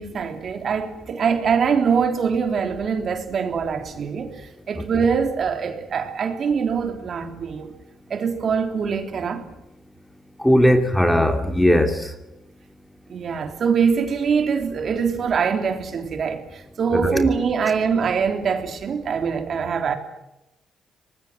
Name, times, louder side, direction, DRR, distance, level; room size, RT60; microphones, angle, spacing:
voice 1, 0.0-7.7 8.1-9.5 13.1-20.0, right 6 dB, 55° right, 3.5 m, -23 dB
voice 2, 10.4-12.1 16.9-17.3, equal, 5° left, 2.7 m, -18 dB
24.0 x 20.5 x 9.3 m
cardioid pair, 90°, 0 cm